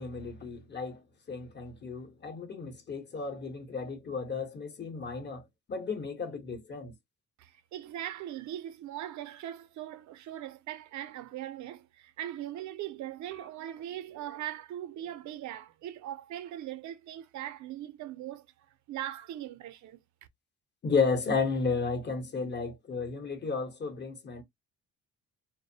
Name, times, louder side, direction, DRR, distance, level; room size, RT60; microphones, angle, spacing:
voice 1, 0.0-5.4 5.7-6.9 20.8-24.4, left 4 dB, 35° left, 0.9 m, -33 dB
voice 2, 7.4-18.5 18.9-20.0, right 12 dB, 70° right, 0.5 m, -40 dB
2.5 x 2.0 x 2.7 m
cardioid pair, 90°, 30 cm